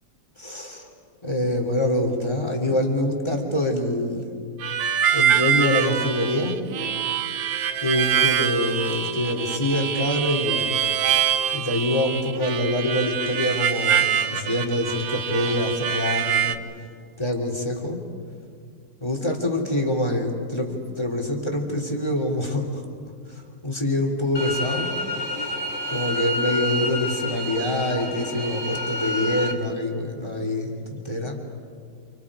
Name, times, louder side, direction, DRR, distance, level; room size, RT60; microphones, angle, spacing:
voice 1, 0.4-0.9 1.2-4.3 5.1-6.6 7.8-10.8 11.5-16.5 17.2-18.0 19.0-22.8 23.3-24.9 25.4-25.5 25.9-31.4, left 1 dB, 15° left, 0 dB, 3.1 m, -25 dB
Harmonica, 4.6-16.6, right 8 dB, 85° right, 1.6 m, -24 dB
sound 1, 24.4-29.5, equal, 40° left, 2.1 m, -29 dB
30.0 x 28.0 x 5.0 m, 2.2 s
omnidirectional pair, 2.0 m